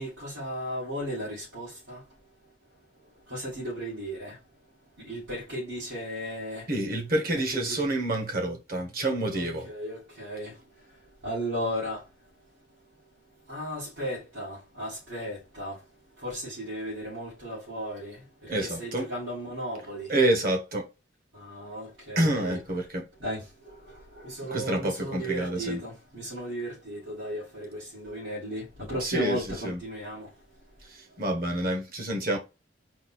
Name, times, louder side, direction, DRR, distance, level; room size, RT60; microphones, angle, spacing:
voice 1, 0.0-2.0 3.3-4.3 5.0-6.6 7.3-7.8 9.3-10.5 11.2-12.0 13.5-15.8 16.2-18.2 18.6-20.1 21.3-22.6 23.2-23.4 24.2-30.3, equal, 85° right, 2.3 m, -35 dB
voice 2, 6.7-9.7 18.5-19.1 20.1-20.9 22.1-23.0 24.5-25.8 29.0-29.8 30.9-32.4, right 1 dB, 50° right, 1.1 m, -28 dB
4.1 x 2.4 x 4.3 m
head